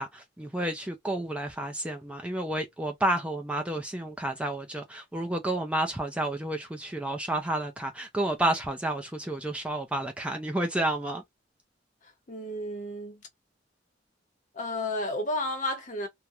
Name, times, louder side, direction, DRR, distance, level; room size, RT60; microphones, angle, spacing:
voice 1, 0.0-11.2, right 1 dB, 5° right, 0.4 m, -30 dB
voice 2, 12.3-13.2 14.5-16.1, left 1 dB, 40° left, 0.7 m, -32 dB
2.8 x 2.0 x 2.3 m
head